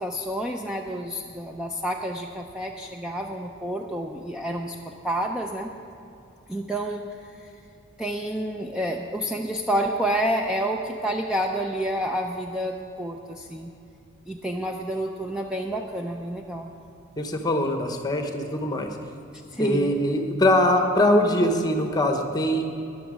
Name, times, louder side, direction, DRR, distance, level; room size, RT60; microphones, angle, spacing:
voice 1, 0.0-5.7 6.5-7.5 8.0-13.7 14.3-16.7 19.5-19.9, right 1 dB, 5° right, 1 dB, 0.5 m, -29 dB
voice 2, 17.2-18.9 19.6-22.6, left 1 dB, 20° left, 5 dB, 1.0 m, -22 dB
13.5 x 10.5 x 5.0 m, 2.8 s
head